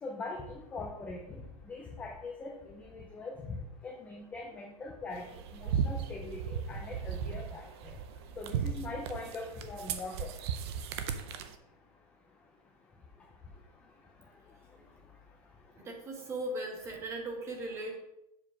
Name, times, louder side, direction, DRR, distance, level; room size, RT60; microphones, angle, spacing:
voice 1, 0.0-5.3 5.5-7.9 8.4-10.3, left 3 dB, 5° left, 0 dB, 0.4 m, -42 dB
sound 1, 5.1-11.5, right 7 dB, 40° right, 0.6 m, -36 dB
voice 2, 15.8-18.0, right 2 dB, 15° right, 2 dB, 1.1 m, -38 dB
7.4 x 4.7 x 5.1 m, 0.87 s
supercardioid pair, 175°, 20 cm